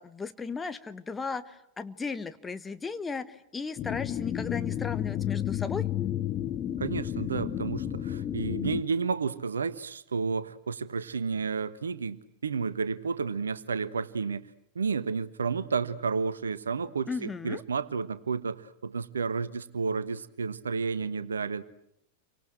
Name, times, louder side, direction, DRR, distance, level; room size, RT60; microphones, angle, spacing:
voice 1, 0.0-5.9 17.1-17.6, left 4 dB, 15° left, 10 dB, 1.3 m, -36 dB
sound 1, 3.8-8.8, left 11 dB, 30° left, 1.1 m, -31 dB
voice 2, 6.8-14.4 14.7-21.6, right 5 dB, 70° right, 14 dB, 1.2 m, -31 dB
30.0 x 24.5 x 7.8 m, 0.77 s
figure-of-eight pair, 90°, 0 cm